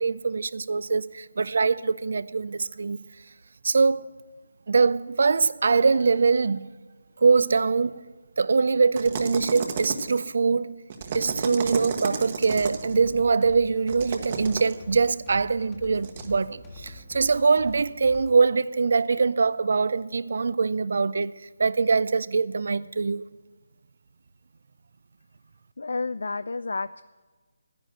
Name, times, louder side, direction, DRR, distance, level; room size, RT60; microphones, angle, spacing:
voice 1, 0.0-3.0 3.6-4.1 4.7-6.7 7.2-8.0 8.4-10.7 11.1-21.3 21.6-23.2, right 4 dB, 60° right, 0.4 m, -23 dB
sound 1, 8.9-10.3 10.9-12.9 13.9-14.8 16.0-16.3, right 5 dB, 35° right, 1.1 m, -32 dB
sound 2, 12.4-18.5, left 3 dB, 15° left, 1.3 m, -45 dB
voice 2, 25.8-27.0, left 3 dB, 70° left, 0.3 m, -30 dB
10.0 x 10.0 x 7.5 m
figure-of-eight pair, 155°, 0 cm